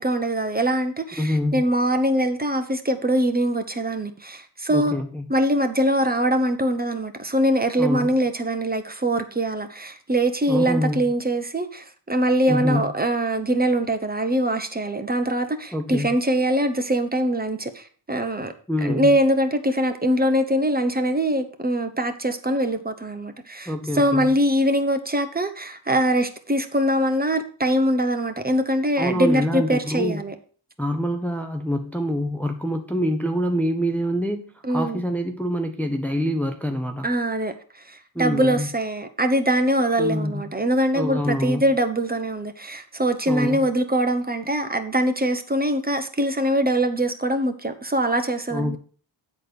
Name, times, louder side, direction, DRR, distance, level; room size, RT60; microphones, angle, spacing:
voice 1, 0.0-5.0 5.3-18.5 18.8-30.3 34.6-35.0 37.0-48.8, right 1 dB, 20° right, 1.0 m, -23 dB
voice 2, 1.2-1.6 4.7-5.3 7.8-8.1 10.5-11.0 12.5-12.8 15.7-16.1 18.7-19.2 23.7-24.3 29.0-30.2 30.8-34.4 34.7-37.1 38.1-38.7 40.0-40.4 40.9-41.6 43.3-43.7 48.5-48.8, equal, 5° left, 0.8 m, -25 dB
9.6 x 4.2 x 6.8 m
wide cardioid pair, 110°, 45 cm